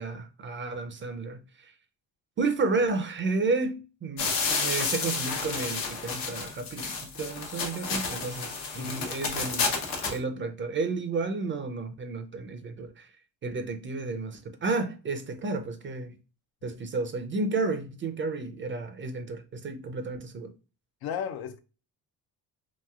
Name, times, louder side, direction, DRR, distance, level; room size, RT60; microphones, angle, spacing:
voice 1, 0.0-1.7 2.4-13.1 13.4-16.2 16.6-20.5, right 3 dB, 30° right, 0.5 m, -32 dB
sound 1, 4.2-10.2, left 4 dB, 80° left, 0.9 m, -31 dB
voice 2, 21.0-21.6, left 8 dB, 65° left, 0.5 m, -34 dB
3.0 x 2.6 x 2.3 m
supercardioid pair, 75°, 41 cm